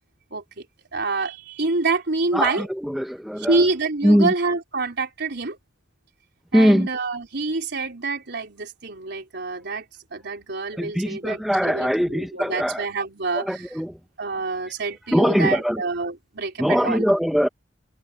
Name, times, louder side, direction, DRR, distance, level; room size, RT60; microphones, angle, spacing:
voice 1, 0.3-0.6 0.9-2.7 3.4-5.6 6.5-9.8 10.1-13.7 14.2-17.1, right 3 dB, 60° right, 4.1 m, -27 dB
voice 2, 3.0-3.5 4.0-4.3 6.5-6.9 10.8-12.8 13.5-13.9 15.1-15.8 16.6-17.5, equal, ahead, 1.1 m, -20 dB
head